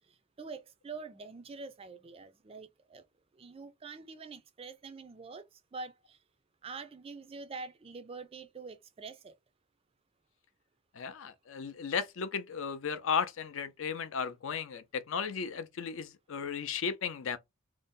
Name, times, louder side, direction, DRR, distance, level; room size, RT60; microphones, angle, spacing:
voice 1, 0.4-3.0 3.4-6.2 6.6-9.3, right 4 dB, 25° right, 0.3 m, -45 dB
voice 2, 10.9-17.4, left 6 dB, 65° left, 0.5 m, -35 dB
2.6 x 2.0 x 3.6 m
head